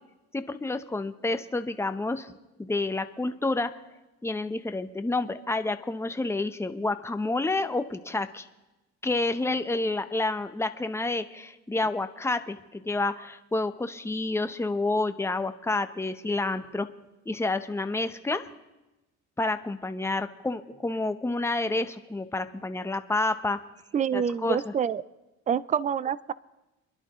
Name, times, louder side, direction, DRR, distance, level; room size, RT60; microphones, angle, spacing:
voice 1, 0.3-2.3 2.6-3.7 4.2-8.5 9.0-16.9 17.3-18.5 19.4-23.6 24.1-24.7, left 2 dB, 10° left, 9 dB, 0.7 m, -29 dB
voice 2, 23.9-25.0 25.5-26.3, right 7 dB, 25° right, 19 dB, 0.4 m, -27 dB
29.0 x 11.0 x 3.1 m, 1.0 s
cardioid pair, 90°, 30 cm